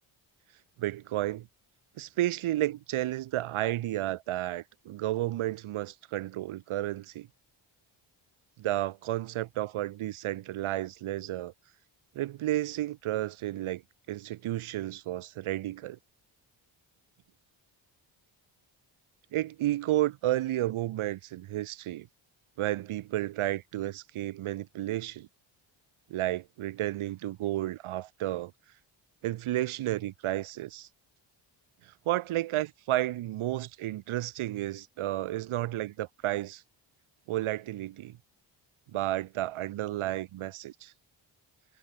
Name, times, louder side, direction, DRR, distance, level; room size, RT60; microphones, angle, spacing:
voice 1, 0.8-1.5 2.0-7.3 8.6-11.5 12.1-13.8 14.1-16.0 19.3-22.1 22.6-25.3 26.1-28.5 29.2-30.9 31.8-36.6 37.3-38.2 38.9-40.9, right 14 dB, 85° right, 1.3 m, -32 dB
cardioid pair, 95°, 48 cm